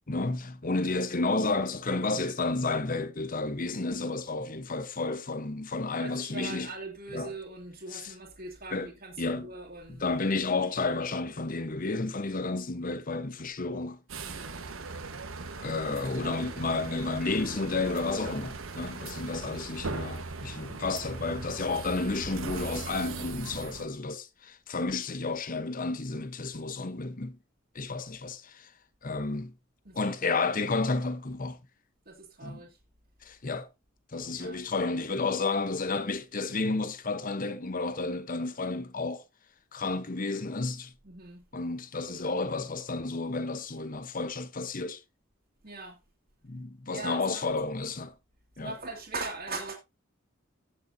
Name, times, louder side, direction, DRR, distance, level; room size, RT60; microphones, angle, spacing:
voice 1, 0.1-6.7 7.1-7.3 7.9-8.1 8.7-8.9 9.2-9.5 9.9-14.0 15.6-27.4 27.7-28.7 29.0-29.5 29.9-31.6 32.4-32.6 33.2-33.7 34.1-39.2 39.7-40.9 41.5-45.0 46.4-48.1 48.6-48.7, left 3 dB, 40° left, 1.0 m, -31 dB
voice 2, 6.0-10.1 14.2-14.7 16.2-16.5 19.0-19.4 29.8-30.2 32.1-32.8 34.3-34.6 41.0-41.5 45.6-46.0 46.9-47.4 48.6-49.7, right 3 dB, 50° right, 2.3 m, -41 dB
sound 1, 14.1-23.9, right 3 dB, 85° right, 1.3 m, -39 dB
17.5 x 6.7 x 2.7 m
head